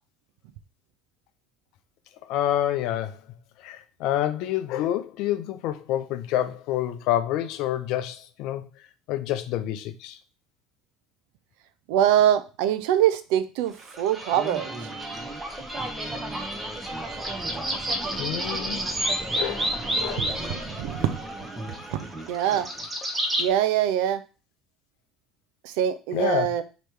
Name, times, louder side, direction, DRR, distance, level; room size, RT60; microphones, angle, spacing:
voice 1, 2.3-3.2 3.6-8.6 9.1-10.2 18.2-18.8 19.4-19.7 20.0-20.3 26.1-26.5, left 12 dB, 70° left, 0.5 m, -28 dB
voice 2, 11.9-14.7 20.3-21.2 21.9-22.0 22.3-22.7 23.4-24.2 25.6-26.6, right 10 dB, 75° right, 0.5 m, -23 dB
sound 1, 13.8-23.5, right 1 dB, 20° right, 1.0 m, -31 dB
3.2 x 3.0 x 4.7 m
supercardioid pair, 85°, 0 cm